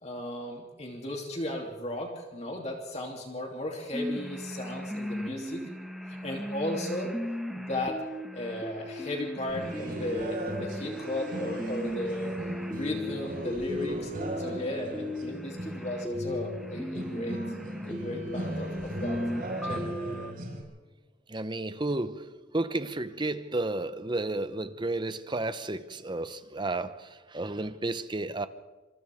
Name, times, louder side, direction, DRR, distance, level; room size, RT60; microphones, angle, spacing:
voice 1, 0.0-5.6 6.1-7.1 7.5-8.0 8.3-12.3 12.7-14.1 14.4-17.4 17.8-19.2 19.6-20.0, left 1 dB, 35° left, 3.0 m, -35 dB
sound 1, 3.9-20.3, equal, ahead, 1.5 m, -37 dB
sound 2, 9.5-20.6, equal, 45° right, 5.7 m, -38 dB
voice 2, 21.3-28.5, right 2 dB, 25° right, 0.8 m, -32 dB
27.5 x 27.0 x 3.6 m
head